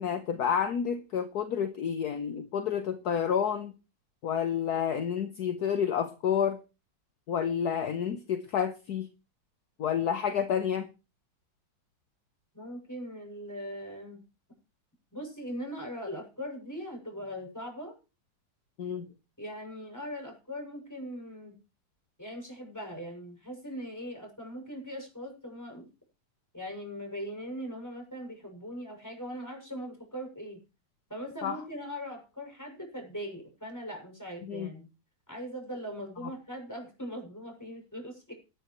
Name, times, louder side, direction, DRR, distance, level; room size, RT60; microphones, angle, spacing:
voice 1, 0.0-3.7 4.2-6.6 7.3-9.1 9.8-10.9 18.8-19.1 31.4-31.6 34.4-34.7, left 8 dB, 60° left, 8 dB, 1.5 m, -29 dB
voice 2, 12.5-14.2 15.1-17.9 19.4-21.6 22.2-25.9 26.5-30.6 31.1-34.9 35.3-38.3, equal, 10° left, 2 dB, 7.0 m, -40 dB
18.5 x 12.5 x 3.2 m, 0.31 s
omnidirectional pair, 2.0 m